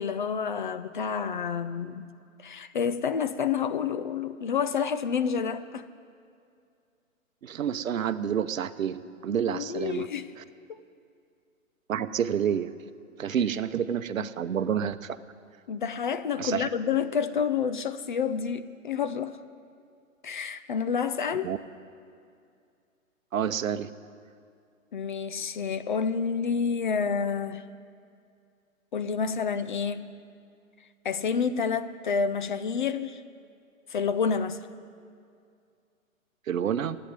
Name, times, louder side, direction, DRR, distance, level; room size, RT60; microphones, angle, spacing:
voice 1, 0.0-2.1 2.4-5.8 9.5-10.3 10.7-10.8 14.2-14.3 15.7-19.4 20.2-21.5 24.9-27.7 28.9-30.2 31.0-33.2 33.9-34.6, left 6 dB, 40° left, 12 dB, 0.4 m, -29 dB
voice 2, 7.4-10.1 10.4-10.5 11.9-12.7 13.2-15.2 16.4-16.7 21.4-21.6 23.3-23.9 36.5-37.0, right 8 dB, 70° right, 13 dB, 0.8 m, -29 dB
11.5 x 8.9 x 9.5 m, 2.4 s
hypercardioid pair, 130°, 41 cm